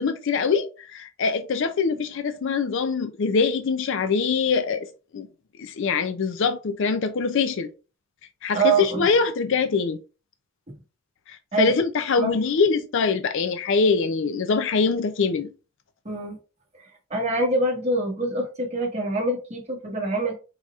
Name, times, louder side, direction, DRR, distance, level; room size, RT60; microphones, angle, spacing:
voice 1, 0.0-4.9 5.1-5.3 5.6-7.7 8.4-10.0 11.3-15.5, left 5 dB, 55° left, 0.4 m, -23 dB
voice 2, 8.5-9.1 11.5-11.7 12.2-12.3 16.0-16.4 17.1-20.3, right 2 dB, 30° right, 1.3 m, -25 dB
4.8 x 4.1 x 2.4 m
head